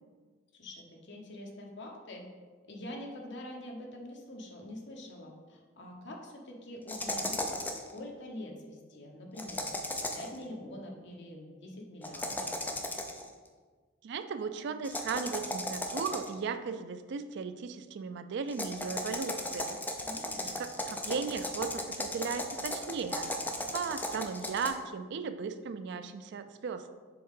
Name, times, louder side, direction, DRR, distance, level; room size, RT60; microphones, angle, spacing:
voice 1, 0.5-2.2 2.6-7.5 7.7-9.6 10.1-12.5 20.0-20.6, left 1 dB, 65° left, 1 dB, 1.0 m, -45 dB
sound 1, 6.9-7.9 9.4-10.4 12.0-13.3 14.8-16.4 18.5-24.7, left 1 dB, 10° left, 0.5 m, -36 dB
voice 2, 14.0-19.8 20.4-23.4 23.7-26.9, right 5 dB, 60° right, 10 dB, 0.4 m, -36 dB
6.8 x 3.6 x 3.7 m, 1.5 s
head